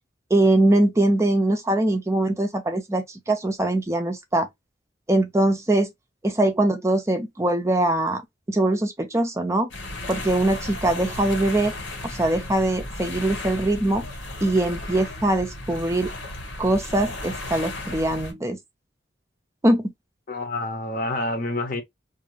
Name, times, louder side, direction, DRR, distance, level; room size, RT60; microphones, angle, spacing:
voice 1, 0.3-4.5 5.1-5.9 6.2-8.2 8.5-9.7 10.1-11.7 12.0-14.0 14.4-16.1 16.6-18.6 19.6-19.9, right 1 dB, 15° right, 0.4 m, -22 dB
sound 1, 9.7-18.3, left 2 dB, 90° left, 1.5 m, -35 dB
voice 2, 20.3-21.8, left 2 dB, 50° left, 0.7 m, -28 dB
2.5 x 2.5 x 2.9 m
head